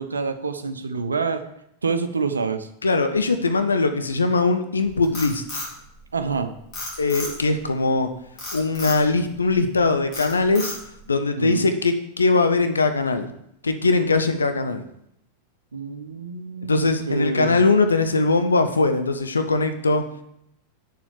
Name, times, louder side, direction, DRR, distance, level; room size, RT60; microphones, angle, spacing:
voice 1, 0.0-1.4 1.8-2.7 6.1-6.5 11.4-11.7 15.7-17.6, right 4 dB, 75° right, 9 dB, 0.7 m, -27 dB
voice 2, 2.8-5.4 7.0-8.1 8.5-10.8 11.1-13.3 13.6-14.8 16.7-20.0, left 3 dB, 75° left, 8 dB, 0.8 m, -21 dB
Frog, 4.8-6.4 6.7-7.6 8.4-9.0 9.5-9.8 10.1-11.0, left 2 dB, 35° left, 4.3 m, -33 dB
8.3 x 7.0 x 4.9 m, 0.75 s
figure-of-eight pair, 90°, 0 cm